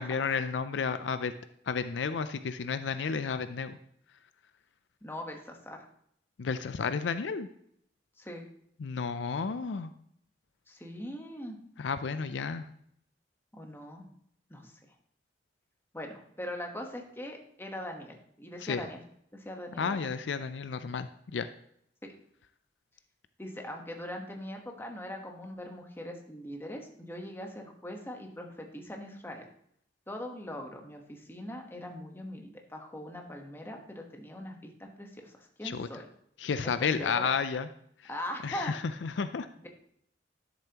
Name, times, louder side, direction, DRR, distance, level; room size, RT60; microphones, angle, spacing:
voice 1, 0.0-1.3 1.7-3.8 6.4-7.5 8.8-9.9 11.8-12.7 18.6-18.8 19.8-21.5 35.6-35.9 36.4-37.7 38.4-39.5, left 5 dB, 70° left, 11 dB, 0.4 m, -32 dB
voice 2, 5.0-5.9 8.2-8.5 10.7-11.6 13.5-14.0 14.5-14.7 15.9-19.0 19.3-20.1 22.0-22.1 23.4-29.4 30.1-36.1 36.8-37.3 38.1-38.7, left 1 dB, 15° left, 2 dB, 1.2 m, -41 dB
11.5 x 7.0 x 2.9 m, 0.69 s
head